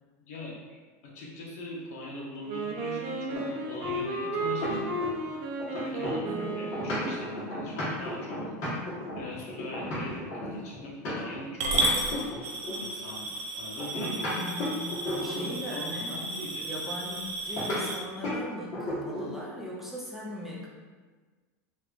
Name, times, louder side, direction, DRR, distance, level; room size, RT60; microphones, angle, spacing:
voice 1, 0.2-0.8 1.0-4.9 5.7-8.6 9.2-12.2 12.8-14.5 15.1-16.7, left 1 dB, 70° left, -3 dB, 0.9 m, -41 dB
Wind instrument woodwind instrument, 2.5-7.5, right 2 dB, 50° right, 0.6 m, -34 dB
sound 1, 3.3-5.3 5.6-11.4 11.7-12.9 13.8-15.6 17.6-17.8 18.2-18.4 18.7-19.4, left 1 dB, 45° left, 1.3 m, -34 dB
Coin (dropping) / Glass, 11.6-18.0, right 2 dB, 90° right, 0.7 m, -33 dB
voice 2, 14.3-16.2 16.6-20.7, left 1 dB, 5° right, -6 dB, 0.4 m, -39 dB
3.2 x 3.1 x 2.5 m, 1.4 s
supercardioid pair, 155°, 8 cm